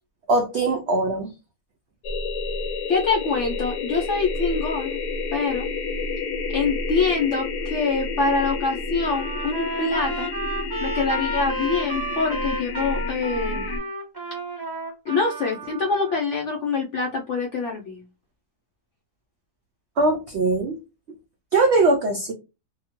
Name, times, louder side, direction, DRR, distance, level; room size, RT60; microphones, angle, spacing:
voice 1, 0.3-1.3 20.0-20.8 21.5-22.3, right 2 dB, 90° right, 2 dB, 0.6 m, -21 dB
sound 1, 2.0-13.8, left 3 dB, 85° left, 1.2 m, -30 dB
voice 2, 2.9-5.0 5.3-5.7 6.5-10.3 10.8-13.7 15.1-18.0, left 4 dB, 70° left, 0 dB, 0.7 m, -25 dB
Trumpet, 9.1-16.2, right 1 dB, 30° right, 1.2 m, -32 dB
2.8 x 2.1 x 2.8 m, 0.27 s
omnidirectional pair, 1.7 m